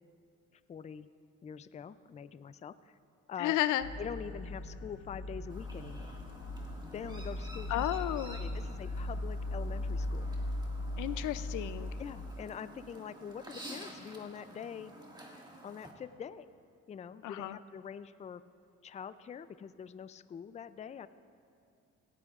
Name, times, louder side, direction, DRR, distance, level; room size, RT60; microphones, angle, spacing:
voice 1, 0.5-1.1 1.4-3.0 3.3-3.6 4.0-6.2 6.9-7.9 8.3-10.3 12.0-14.9 15.6-16.5 16.9-18.4 18.8-21.1, left 7 dB, 25° left, 14 dB, 0.4 m, -44 dB
voice 2, 3.4-3.9 7.7-8.4 11.0-11.9 17.2-17.6, left 14 dB, 80° left, 14 dB, 0.5 m, -32 dB
sound 1, 3.8-12.3, left 1 dB, 65° left, 0.9 m, -38 dB
Chirp tweet, 5.5-15.9, right 1 dB, 15° right, 1.9 m, -51 dB
17.5 x 15.5 x 2.4 m, 2.5 s
cardioid pair, 90°, 30 cm